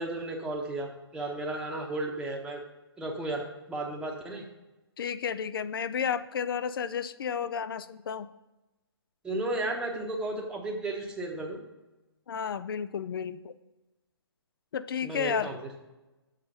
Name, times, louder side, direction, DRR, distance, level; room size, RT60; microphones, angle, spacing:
voice 1, 0.0-2.6 3.0-4.4 9.2-11.6 15.0-15.6, right 2 dB, 5° right, -1 dB, 0.9 m, -34 dB
voice 2, 5.0-8.3 12.3-13.5 14.7-15.5, left 7 dB, 60° left, 14 dB, 0.4 m, -32 dB
6.6 x 4.8 x 5.3 m, 1.0 s
hypercardioid pair, 140°, 14 cm